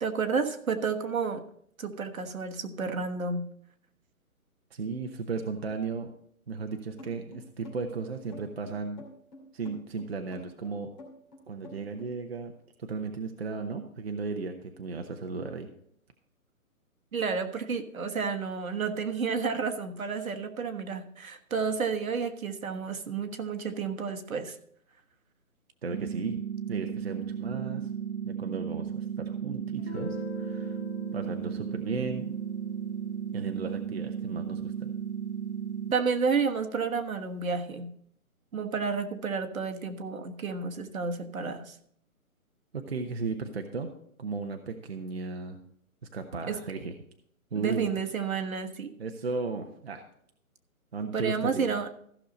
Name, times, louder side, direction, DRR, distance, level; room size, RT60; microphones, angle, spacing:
voice 1, 0.0-1.4 1.8-3.5 17.1-24.6 35.9-37.9 38.5-41.8 46.5-46.6 47.5-48.9 51.1-51.9, right 5 dB, 70° right, 6 dB, 1.4 m, -31 dB
voice 2, 4.7-6.1 6.5-9.0 9.5-10.9 11.5-12.5 12.8-15.7 20.2-20.3 25.8-27.9 28.2-30.8 31.1-32.3 33.3-34.9 42.7-43.9 44.2-45.6 46.1-46.9 47.5-47.9 49.0-50.0 50.9-51.7, right 4 dB, 45° right, 5 dB, 0.8 m, -35 dB
sound 1, 7.0-12.1, left 2 dB, 30° left, 2.7 m, -48 dB
sound 2, 25.9-35.9, right 8 dB, 90° right, 0.7 m, -35 dB
Guitar, 29.8-35.3, left 5 dB, 50° left, 0.7 m, -46 dB
14.5 x 6.4 x 4.1 m, 0.67 s
hypercardioid pair, 175°, 43 cm